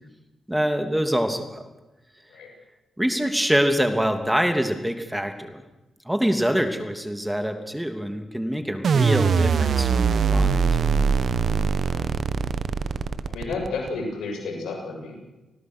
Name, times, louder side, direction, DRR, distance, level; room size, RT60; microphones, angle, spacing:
voice 1, 0.5-1.7 3.0-5.6 6.0-10.6, equal, 5° right, 7 dB, 3.0 m, -25 dB
sound 1, 8.8-13.9, right 5 dB, 65° right, 1.4 m, -22 dB
voice 2, 11.4-12.1 13.3-15.2, left 3 dB, 80° left, 2 dB, 7.4 m, -32 dB
28.0 x 20.0 x 6.4 m, 1.0 s
supercardioid pair, 45°, 0 cm